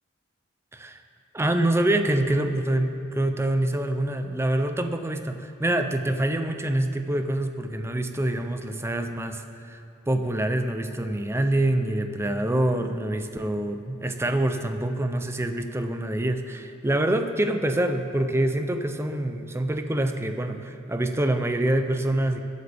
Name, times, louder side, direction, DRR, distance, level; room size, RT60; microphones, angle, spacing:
voice 1, 1.3-9.8 10.1-22.4, right 1 dB, 10° right, 7 dB, 0.5 m, -26 dB
21.0 x 8.2 x 3.5 m, 2.8 s
head